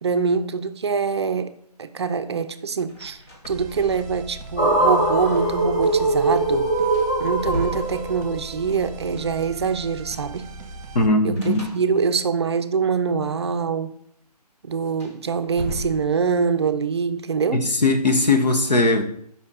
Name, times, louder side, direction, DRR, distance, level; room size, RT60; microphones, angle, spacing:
voice 1, 0.0-1.5 1.8-3.2 3.5-6.7 7.2-10.5 11.2-13.9 14.6-17.7, right 5 dB, 40° right, 0.5 m, -24 dB
sound 1, 2.9-3.7 4.0-4.1 6.3-6.4 6.8-8.6 11.3-12.3 14.8-16.5, left 1 dB, 45° left, 2.3 m, -35 dB
sound 2, 3.4-11.1, right 2 dB, 25° right, 1.1 m, -39 dB
sound 3, 4.6-8.8, right 2 dB, 10° left, 0.5 m, -22 dB
voice 2, 10.9-11.6 17.5-19.0, left 2 dB, 90° left, 1.2 m, -19 dB
7.4 x 5.5 x 4.1 m
figure-of-eight pair, 155°, 21 cm